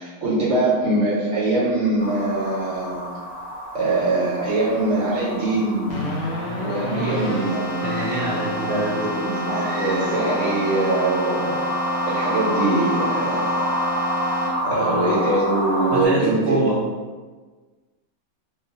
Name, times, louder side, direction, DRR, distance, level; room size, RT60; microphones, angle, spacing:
voice 1, 0.0-3.1 3.7-6.1 6.5-8.0 8.6-11.7 12.1-13.7 14.6-16.7, right 2 dB, 55° right, -8 dB, 1.4 m, -23 dB
sound 1, 2.0-16.1, equal, 10° right, 0.6 m, -29 dB
Keyboard (musical), 5.9-14.9, left 1 dB, 60° left, 0.7 m, -29 dB
voice 2, 6.8-7.4 7.8-8.8 14.7-15.0 15.9-16.8, right 3 dB, 75° right, -4 dB, 0.5 m, -26 dB
sound 2, 7.8-9.1 9.5-10.3, right 1 dB, 35° right, 1.1 m, -36 dB
3.1 x 2.1 x 3.9 m, 1.4 s
omnidirectional pair, 1.6 m